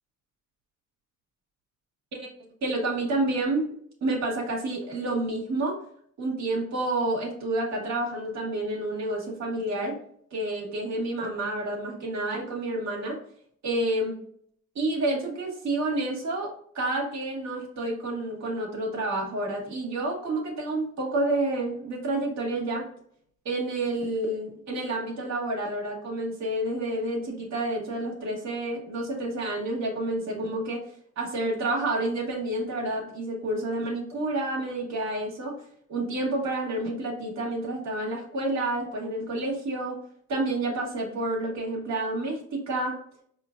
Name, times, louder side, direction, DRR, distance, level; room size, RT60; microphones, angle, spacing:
voice 1, 2.6-3.7 4.0-5.8 6.2-10.0 10.3-13.2 13.6-14.2 14.7-22.9 23.4-30.8 31.1-35.6 35.9-40.0 40.3-43.0, right 2 dB, 65° right, -2 dB, 1.5 m, -29 dB
4.6 x 2.9 x 2.5 m, 0.64 s
cardioid pair, 90°, 30 cm